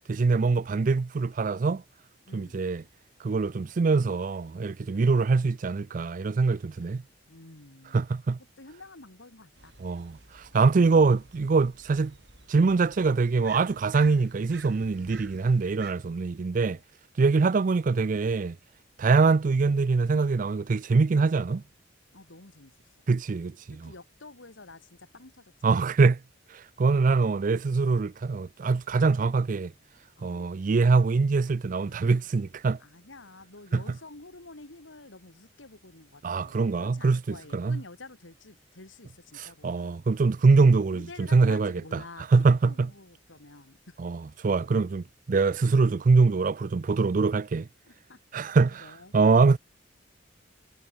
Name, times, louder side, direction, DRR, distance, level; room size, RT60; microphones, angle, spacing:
voice 1, 0.1-1.8 2.3-2.8 3.2-7.0 7.9-8.4 9.8-12.1 12.5-16.8 17.2-18.6 19.0-21.6 23.1-23.9 25.6-26.2 26.5-29.7 30.2-32.8 33.7-33.8 36.2-37.8 39.4-42.0 42.3-42.9 44.0-47.7 48.3-48.9 49.1-49.6, right 4 dB, 45° right, 0.4 m, -24 dB
voice 2, 2.3-2.6 4.8-5.2 7.3-8.0 8.6-9.7 16.5-16.8 22.1-22.7 23.8-25.8 30.2-30.5 31.8-32.3 32.8-40.0 40.9-42.3 42.7-44.0 47.9-49.1, left 2 dB, 85° left, 2.8 m, -49 dB
sound 1, 9.5-15.9, right 4 dB, 60° right, 5.5 m, -51 dB
head